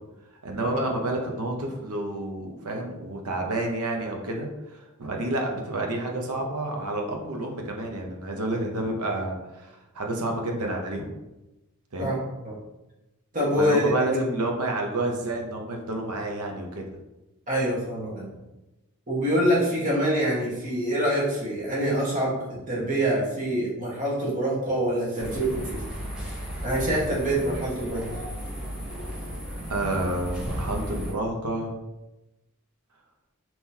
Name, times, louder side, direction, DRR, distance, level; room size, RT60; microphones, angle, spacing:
voice 1, 0.4-11.1 11.9-12.2 13.6-16.8 29.7-31.7, right 2 dB, 85° right, 2 dB, 0.7 m, -29 dB
voice 2, 13.3-14.2 17.5-18.3 19.1-22.4 22.7-25.8 26.6-28.0, equal, 35° right, -6 dB, 1.2 m, -25 dB
sound 1, 25.2-31.1, equal, 5° right, 0.6 m, -34 dB
3.7 x 2.9 x 2.7 m, 1.0 s
head